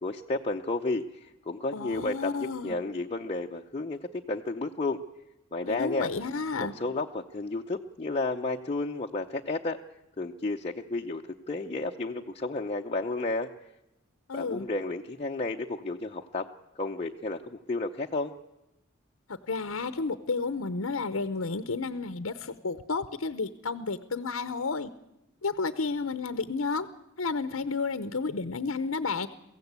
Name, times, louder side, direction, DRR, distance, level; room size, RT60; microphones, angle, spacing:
voice 1, 0.0-5.0 5.5-6.1 6.6-9.8 10.2-11.2 11.5-13.7 14.3-16.5 16.8-18.3, left 2 dB, 30° left, 0 dB, 0.7 m, -32 dB
voice 2, 1.7-2.8 5.6-6.7 14.3-14.7 19.3-24.9 25.4-26.9 27.2-29.3, left 4 dB, 85° left, 11 dB, 0.8 m, -31 dB
23.5 x 16.0 x 8.2 m, 0.93 s
head